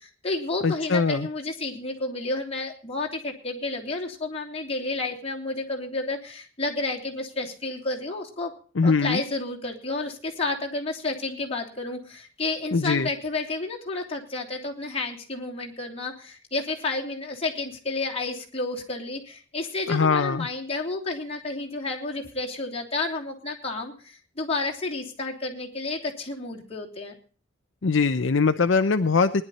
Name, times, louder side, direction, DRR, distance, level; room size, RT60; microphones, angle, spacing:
voice 1, 0.0-8.5 8.8-27.2, left 3 dB, 30° left, -1 dB, 3.3 m, -31 dB
voice 2, 0.6-1.3 8.8-9.2 12.7-13.1 19.9-20.5 27.8-29.4, left 4 dB, 65° left, 9 dB, 0.6 m, -22 dB
20.0 x 11.0 x 4.2 m, 0.41 s
head